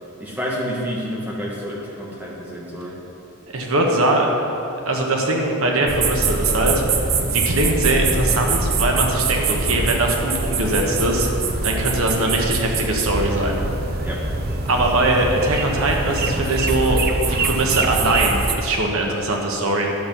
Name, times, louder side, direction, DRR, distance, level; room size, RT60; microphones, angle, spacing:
voice 1, 0.2-2.9 14.0-14.2, equal, 10° right, -5 dB, 1.5 m, -29 dB
voice 2, 3.5-4.3 4.9-6.8 7.3-11.3 11.6-13.6 14.6-19.9, right 2 dB, 75° right, 0 dB, 1.3 m, -21 dB
sound 1, 5.9-18.5, right 3 dB, 45° right, 0.7 m, -23 dB
11.0 x 7.1 x 5.4 m, 2.9 s
head